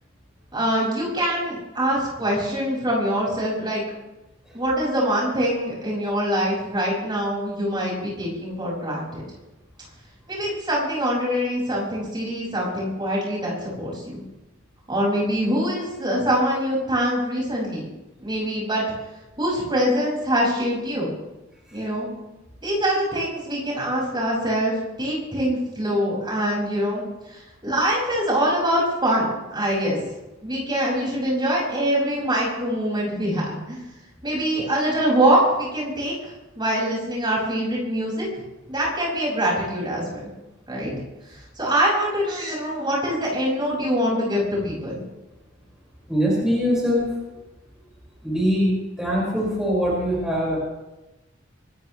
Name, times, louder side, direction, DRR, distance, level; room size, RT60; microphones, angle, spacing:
voice 1, 0.5-3.8 4.5-9.2 10.3-14.2 14.9-17.8 18.2-18.8 19.4-21.1 21.7-22.1 22.6-30.0 30.4-33.8 34.2-38.3 38.7-40.2 40.7-40.9 41.3-45.0, equal, 25° right, -4 dB, 6.4 m, -24 dB
voice 2, 46.1-47.1 48.2-50.6, equal, 5° right, -6 dB, 5.7 m, -23 dB
25.5 x 14.5 x 3.3 m, 1.0 s
head